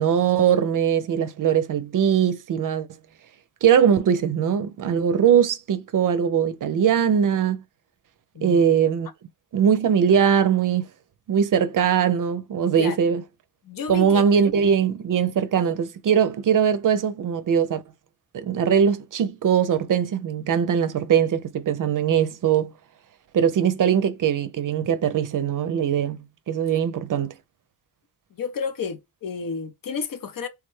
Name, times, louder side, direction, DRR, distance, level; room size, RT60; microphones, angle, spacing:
voice 1, 0.0-2.9 3.6-7.6 8.4-9.1 9.5-10.9 11.3-13.2 13.9-17.8 18.3-22.7 23.3-26.2 26.5-27.3, right 8 dB, 55° right, 0.5 m, -21 dB
voice 2, 8.3-8.7 12.8-13.0 13.6-14.2 28.3-30.5, left 5 dB, 60° left, 0.6 m, -31 dB
3.4 x 2.1 x 3.1 m
cardioid pair, 60°, 39 cm